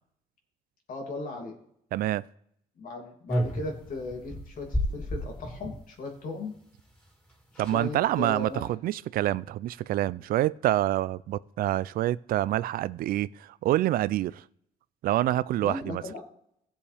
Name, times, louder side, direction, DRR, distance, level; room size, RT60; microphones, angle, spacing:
voice 1, 0.9-1.6 2.8-6.5 7.5-8.6 15.6-16.3, left 2 dB, 60° left, 1 dB, 2.7 m, -37 dB
voice 2, 1.9-2.2 7.6-14.4 15.0-16.0, right 14 dB, 65° right, 19 dB, 0.4 m, -27 dB
sound 1, 3.3-5.8 7.0-7.1 7.3-7.4 7.6-7.9 8.4-8.7, equal, 10° left, 2.8 m, -32 dB
16.5 x 7.2 x 3.4 m, 0.71 s
cardioid pair, 105°, 16 cm